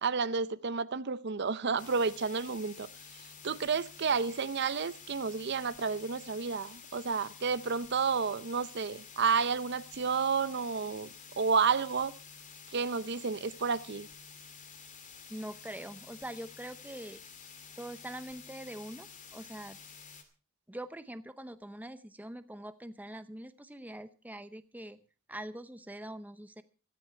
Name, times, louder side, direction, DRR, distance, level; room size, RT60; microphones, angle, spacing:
voice 1, 0.0-2.9 3.4-11.1 11.4-12.1 12.7-14.1, right 5 dB, 55° right, 0.6 m, -31 dB
sound 1, 1.8-20.2, left 6 dB, 35° left, 2.2 m, -51 dB
voice 2, 15.3-17.2 17.8-19.8 20.7-25.0 25.3-26.6, right 1 dB, 10° right, 0.7 m, -43 dB
16.5 x 13.5 x 4.4 m
head